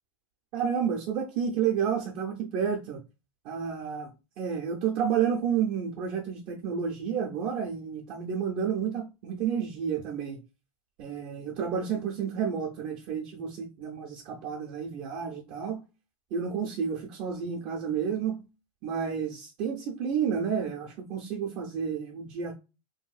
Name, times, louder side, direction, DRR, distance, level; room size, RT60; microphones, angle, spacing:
voice 1, 0.5-3.0 3.4-4.1 4.4-10.4 11.0-15.8 16.3-18.4 18.8-22.5, right 7 dB, 30° right, 0.4 m, -30 dB
3.0 x 2.7 x 2.3 m
supercardioid pair, 165°, 17 cm